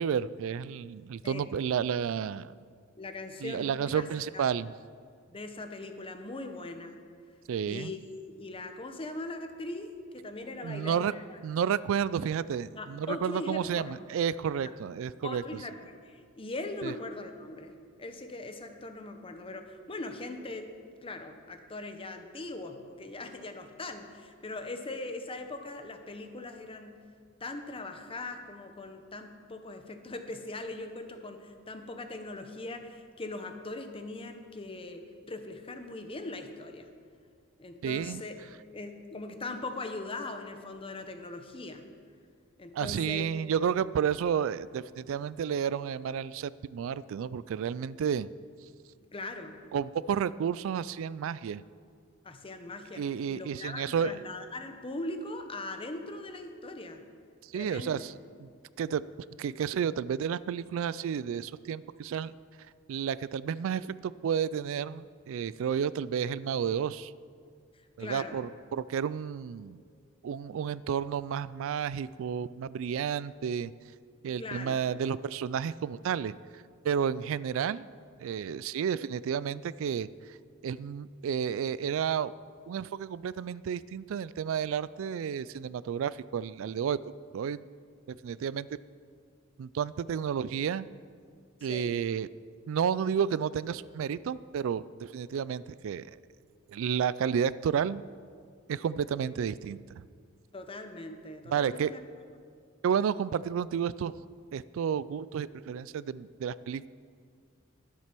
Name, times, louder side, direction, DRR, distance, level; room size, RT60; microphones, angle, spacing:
voice 1, 0.0-2.5 3.4-4.7 7.5-7.9 10.6-11.1 11.4-15.6 16.8-16.9 37.8-38.2 42.7-48.3 49.7-51.6 53.0-54.2 57.5-58.1 58.4-58.5 58.8-59.0 59.4-62.3 62.9-67.1 68.0-69.8 70.2-73.7 74.2-76.3 76.8-77.9 78.2-80.1 80.6-82.3 82.7-87.0 87.3-87.6 88.1-88.7 89.6-90.9 91.6-92.3 92.7-96.1 96.7-98.0 98.7-99.8 101.5-101.9 102.8-104.1 104.5-106.9, right 7 dB, 65° right, 18 dB, 0.3 m, -31 dB
voice 2, 3.0-4.0 4.3-4.4 5.3-7.0 7.6-8.0 8.3-9.9 10.1-11.4 12.7-14.0 14.6-14.7 15.2-20.7 21.0-27.0 27.4-36.9 37.6-38.3 38.7-41.8 42.6-43.3 49.1-49.6 52.2-53.0 53.3-57.0 57.5-58.0 67.7-68.4 74.3-74.8 91.6-92.0 100.5-102.0, left 2 dB, 25° left, 6 dB, 0.8 m, -40 dB
11.5 x 7.5 x 6.0 m, 2.1 s
head